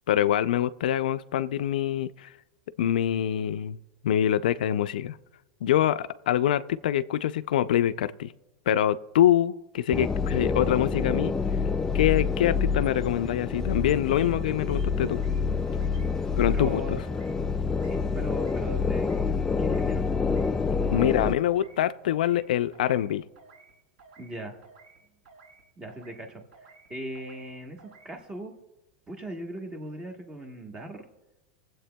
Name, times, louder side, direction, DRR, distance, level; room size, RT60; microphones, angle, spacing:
voice 1, 0.1-2.3 2.8-3.8 4.0-5.2 5.6-8.3 8.7-11.3 11.9-15.2 16.4-16.8 20.9-23.2, left 11 dB, 85° left, 15 dB, 0.4 m, -25 dB
sound 1, 9.9-21.3, left 5 dB, 10° left, 0.3 m, -27 dB
sound 2, 11.1-23.6, right 1 dB, 65° right, 3.2 m, -56 dB
sound 3, 14.1-14.3 14.6-15.4 15.7-16.1 16.4-16.8 17.0-17.4 17.7-18.0 18.3-18.7 18.9-19.3 19.6-19.9 20.2-20.6 20.8-21.2 21.5-21.8 22.1-22.5 22.7-23.1 23.4-23.7 24.0-24.3 24.6-25.0 25.3-25.6 25.9-26.2 26.5-26.9 27.1-27.5 27.8-28.1, right 4 dB, 80° right, 4.0 m, -54 dB
voice 2, 16.5-17.0 17.8-20.0 20.7-21.3 24.2-24.6 25.8-28.5 29.1-31.1, right 1 dB, 20° right, 3 dB, 1.2 m, -39 dB
23.5 x 7.8 x 2.2 m, 0.97 s
supercardioid pair, 140°, 5 cm